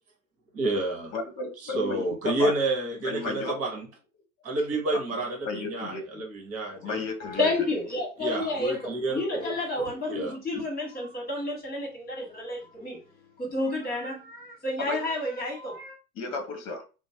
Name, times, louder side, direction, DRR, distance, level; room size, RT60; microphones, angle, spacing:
voice 1, 0.5-1.1 1.6-3.9 4.4-7.0 8.2-9.6 10.1-10.3, right 2 dB, 30° right, 1 dB, 1.3 m, -29 dB
voice 2, 1.1-2.5 3.0-3.6 5.1-5.2 5.4-6.2 6.7-7.5 14.9-15.0 16.1-16.8, left 4 dB, 35° left, 5 dB, 1.1 m, -33 dB
voice 3, 7.2-13.0 13.4-16.0, left 2 dB, 20° left, 0 dB, 1.5 m, -30 dB
2.9 x 2.1 x 2.8 m, 0.33 s
figure-of-eight pair, 90°, 44 cm